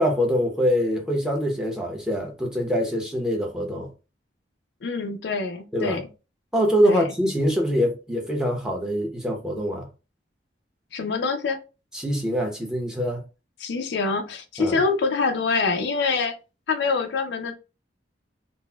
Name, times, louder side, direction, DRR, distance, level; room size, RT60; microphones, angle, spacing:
voice 1, 0.0-3.9 5.7-6.0 6.5-9.9 11.9-13.2 14.6-14.8, equal, 5° right, 0.6 m, -24 dB
voice 2, 4.8-6.0 6.8-7.1 10.9-11.6 13.6-16.4 16.7-17.5, left 4 dB, 70° left, 0.4 m, -25 dB
3.9 x 2.0 x 2.2 m
head